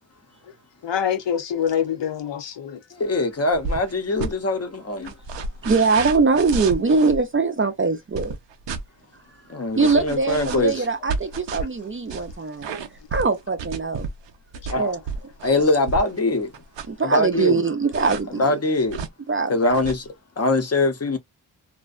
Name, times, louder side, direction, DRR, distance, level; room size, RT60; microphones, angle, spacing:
voice 1, 0.8-2.8 14.6-14.9, left 8 dB, 80° left, 0.7 m, -26 dB
voice 2, 2.9-5.2 9.5-10.8 14.7-14.9 15.4-16.5 17.0-17.7 18.4-19.0 19.5-20.1 20.4-21.2, left 2 dB, 35° left, 0.6 m, -22 dB
sound 1, 3.5-4.3 5.0-7.2 8.1-8.8 9.8-16.2 16.5-17.0 17.9-18.2 18.9-19.1 19.7-20.0, right 4 dB, 90° right, 0.6 m, -31 dB
voice 3, 5.6-8.3 9.8-12.7 13.1-14.1 14.8-15.0 16.9-18.6 19.3-19.5, right 4 dB, 30° right, 0.4 m, -22 dB
2.5 x 2.1 x 2.3 m
wide cardioid pair, 115°, 43 cm